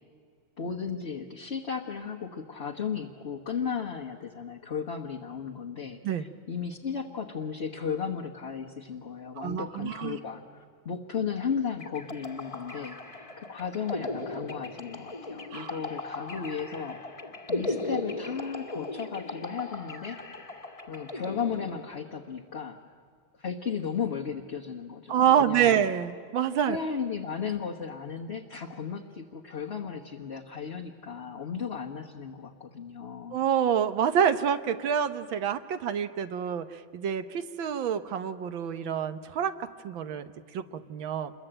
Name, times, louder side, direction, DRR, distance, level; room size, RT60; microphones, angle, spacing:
voice 1, 0.6-20.2 20.9-22.8 23.4-25.8 26.7-33.4, left 6 dB, 35° left, 0 dB, 1.3 m, -35 dB
voice 2, 9.4-10.2 15.5-15.8 25.1-26.8 33.3-41.3, right 8 dB, 70° right, 11 dB, 1.7 m, -27 dB
sound 1, 11.8-22.2, left 2 dB, 20° left, 1.5 m, -37 dB
28.0 x 22.0 x 8.9 m, 2.1 s
omnidirectional pair, 2.3 m